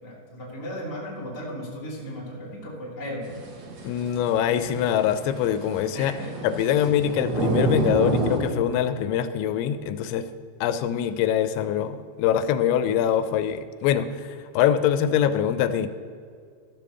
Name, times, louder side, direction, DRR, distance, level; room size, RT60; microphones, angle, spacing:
voice 1, 0.0-3.3 5.9-6.4 6.7-6.8, equal, 10° left, -6 dB, 1.0 m, -36 dB
sound 1, 3.2-8.4, right 2 dB, 85° right, 1.5 m, -29 dB
voice 2, 3.8-6.1 6.4-10.3 10.6-15.9, left 9 dB, 90° left, 11 dB, 2.9 m, -24 dB
13.0 x 5.3 x 6.9 m, 2.2 s
omnidirectional pair, 5.2 m